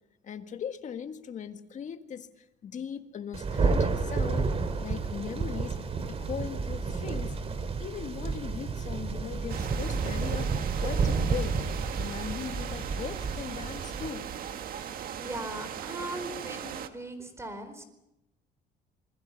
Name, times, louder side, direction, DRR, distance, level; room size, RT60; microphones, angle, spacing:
voice 1, 0.2-5.8 6.1-7.4 7.8-11.7 12.0-14.3, left 7 dB, 45° left, 1.8 m, -39 dB
Thunder, 3.3-14.1, right 4 dB, 35° right, 2.3 m, -30 dB
sound 1, 9.5-16.9, right 9 dB, 60° right, 1.7 m, -39 dB
voice 2, 15.2-17.8, right 1 dB, 15° right, 4.4 m, -39 dB
27.5 x 21.0 x 5.9 m
cardioid pair, 110°, 17 cm